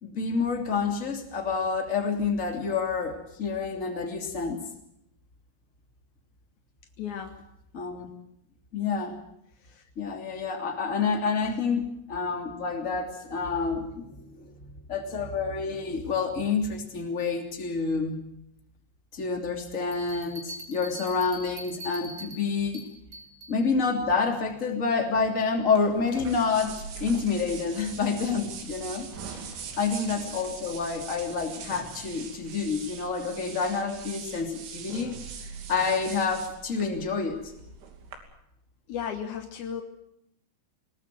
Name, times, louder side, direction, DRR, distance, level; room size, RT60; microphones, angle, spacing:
voice 1, 0.0-4.6 7.7-8.1 8.7-9.2 10.0-18.2 19.1-22.8 23.5-29.1 29.8-35.2 35.7-37.5, left 5 dB, 20° left, 3 dB, 2.4 m, -28 dB
voice 2, 7.0-7.4 9.6-9.8 29.3-29.6 38.9-39.8, left 8 dB, 80° left, 6 dB, 1.7 m, -35 dB
sound 1, 19.9-23.6, right 1 dB, 35° right, 3.4 m, -43 dB
sound 2, 25.7-38.2, right 6 dB, 80° right, 5.4 m, -42 dB
23.0 x 19.5 x 7.8 m, 0.78 s
omnidirectional pair, 5.6 m